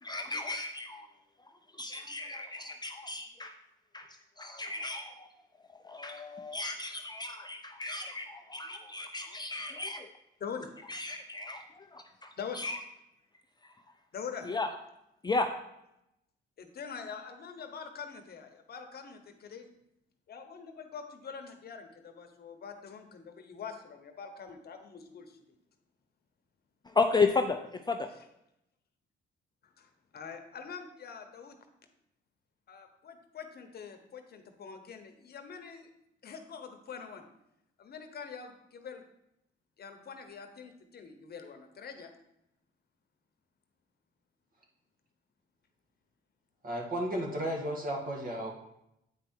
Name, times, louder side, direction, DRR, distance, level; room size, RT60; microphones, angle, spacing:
voice 1, 0.0-1.1 1.4-3.5 3.9-5.3 5.7-10.1 10.9-12.8 13.6-13.7 14.5-14.7 15.2-15.5 26.8-28.1, left 3 dB, 20° left, 5 dB, 0.5 m, -34 dB
voice 2, 10.4-10.8 12.4-12.6 14.1-14.5 16.6-19.7 20.3-25.5 29.6-31.6 32.7-35.9 36.2-37.2 37.8-39.0 39.8-42.1, left 6 dB, 55° left, 6 dB, 1.0 m, -44 dB
voice 3, 46.6-48.5, right 1 dB, 45° right, 0 dB, 2.0 m, -34 dB
8.7 x 4.7 x 4.4 m, 0.83 s
cardioid pair, 90°, 20 cm